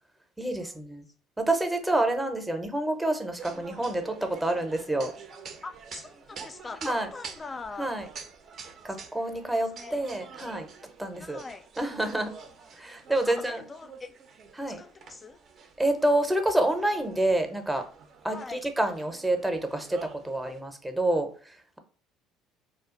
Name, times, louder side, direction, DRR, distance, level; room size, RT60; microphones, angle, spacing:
voice 1, 0.4-1.0 1.4-5.1 6.8-7.1 7.8-8.1 8.8-10.7 11.0-11.4 11.8-12.3 12.8-13.7 14.5-14.8 15.8-17.8 18.2-21.8, right 1 dB, 10° right, 0.7 m, -28 dB
sound 1, 3.4-20.6, right 5 dB, 50° right, 0.6 m, -47 dB
voice 2, 5.6-8.1 9.7-10.0 11.2-11.7 13.2-14.1 14.7-15.4 18.3-18.6, left 4 dB, 25° left, 0.4 m, -42 dB
2.4 x 2.2 x 3.7 m
hypercardioid pair, 70°, 0 cm